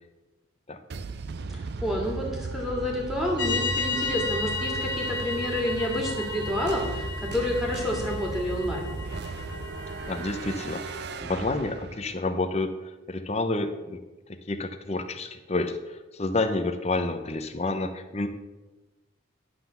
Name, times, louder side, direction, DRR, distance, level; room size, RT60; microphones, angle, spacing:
sound 1, 0.9-12.3, right 4 dB, 50° right, 0.4 m, -36 dB
voice 1, 1.5-8.9, left 1 dB, ahead, -2 dB, 2.1 m, -29 dB
sound 2, 3.4-11.0, left 3 dB, 60° left, 1.1 m, -33 dB
voice 2, 10.0-10.8 11.2-12.8 13.1-14.0 14.3-18.3, left 2 dB, 30° left, 8 dB, 0.7 m, -29 dB
11.5 x 3.9 x 6.9 m, 1.1 s
head